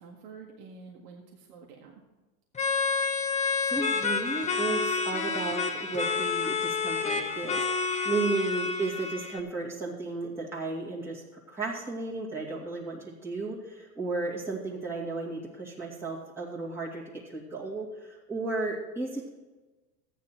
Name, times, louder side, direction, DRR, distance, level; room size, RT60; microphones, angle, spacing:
voice 1, 0.0-2.0, right 4 dB, 70° right, -1 dB, 1.9 m, -48 dB
sound 1, 2.5-9.4, left 4 dB, 15° left, 0.9 m, -29 dB
voice 2, 3.7-19.3, right 3 dB, 5° right, -5 dB, 2.3 m, -34 dB
13.5 x 9.9 x 4.5 m, 1.2 s
supercardioid pair, 115°, 48 cm